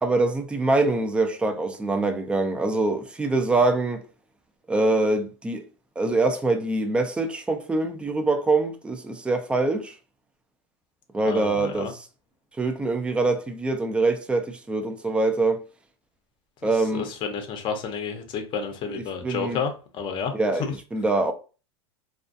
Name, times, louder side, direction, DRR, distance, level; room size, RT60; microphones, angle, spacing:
voice 1, 0.0-4.0 4.7-5.6 6.0-9.9 11.1-12.0 12.6-15.6 16.6-17.1 18.9-19.6 20.3-20.6 20.9-21.3, right 2 dB, 5° right, 0.3 m, -24 dB
voice 2, 11.3-11.9 16.9-20.3 20.6-20.7, left 6 dB, 30° left, 0.6 m, -30 dB
2.4 x 2.2 x 2.5 m
supercardioid pair, 125°, 15 cm